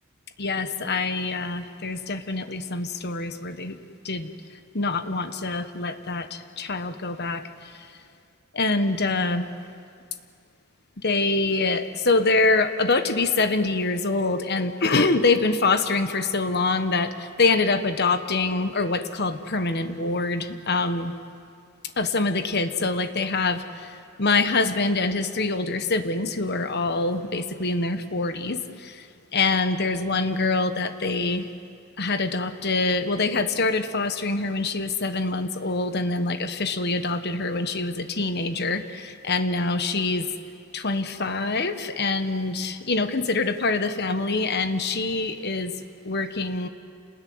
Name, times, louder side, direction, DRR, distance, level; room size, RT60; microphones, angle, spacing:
voice 1, 0.4-3.8 4.0-4.3 4.7-7.9 8.5-9.5 11.0-21.1 22.0-31.5 32.0-40.3 40.7-45.8 46.0-46.7, left 3 dB, 45° left, 9 dB, 1.2 m, -25 dB
28.0 x 20.0 x 9.5 m, 2.3 s
head